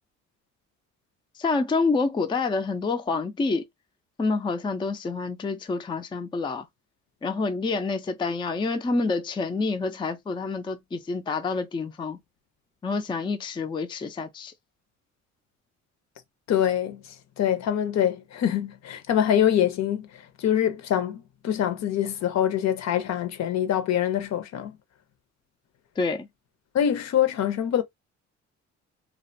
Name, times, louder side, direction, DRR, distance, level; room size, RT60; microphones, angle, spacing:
voice 1, 1.4-3.6 4.2-6.7 7.2-12.2 12.8-14.5 26.0-26.3, left 4 dB, 15° left, 0.4 m, -27 dB
voice 2, 16.5-17.0 17.4-24.8 26.7-27.8, left 10 dB, 60° left, 0.6 m, -24 dB
2.4 x 2.1 x 2.6 m
cardioid pair, 90°, 30 cm